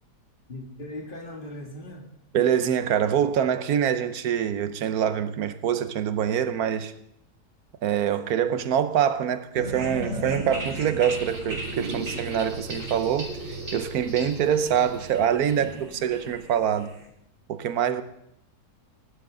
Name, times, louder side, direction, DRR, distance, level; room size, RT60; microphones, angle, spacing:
voice 1, 0.5-2.1 8.2-8.6 14.9-15.0, left 1 dB, 30° left, 2.3 m, -40 dB
voice 2, 2.3-6.9 7.8-16.9 17.5-18.0, right 9 dB, 65° right, 1.2 m, -25 dB
sound 1, 9.5-17.0, right 1 dB, 50° right, 3.5 m, -35 dB
19.0 x 11.5 x 3.8 m
omnidirectional pair, 1.8 m